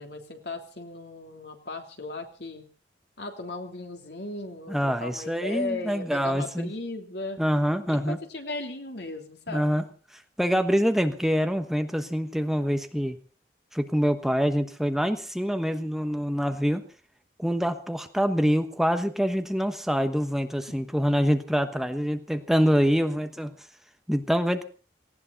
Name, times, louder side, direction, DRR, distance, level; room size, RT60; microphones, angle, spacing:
voice 1, 0.0-2.6 3.2-7.4 7.9-9.8 20.7-20.8, left 2 dB, 65° left, 4 dB, 3.2 m, -36 dB
voice 2, 4.7-6.7 7.4-8.2 9.5-9.8 10.4-13.2 13.7-16.8 17.4-23.5 24.1-24.6, equal, ahead, 7 dB, 1.2 m, -25 dB
19.0 x 17.5 x 4.1 m, 0.37 s
head